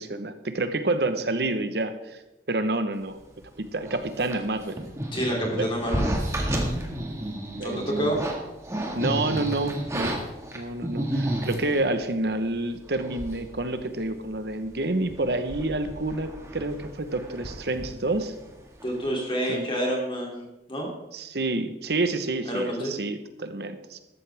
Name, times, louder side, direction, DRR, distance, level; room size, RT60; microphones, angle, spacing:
voice 1, 0.0-2.2 2.5-3.2 3.6-4.8 5.5-5.7 7.5-8.1 8.9-10.2 10.5-18.3 19.5-19.7 21.1-24.0, right 2 dB, 65° right, 9 dB, 1.1 m, -28 dB
sound 1, 3.8-11.9 12.5-12.6 12.9-13.5 13.8-13.9 14.3-14.7 15.0-18.5 18.8-19.1, right 1 dB, 15° right, 1.8 m, -31 dB
voice 2, 5.1-6.1 7.6-8.2 18.8-20.9 22.5-22.9, equal, 30° left, -2 dB, 2.9 m, -28 dB
14.5 x 12.5 x 3.5 m, 0.98 s
head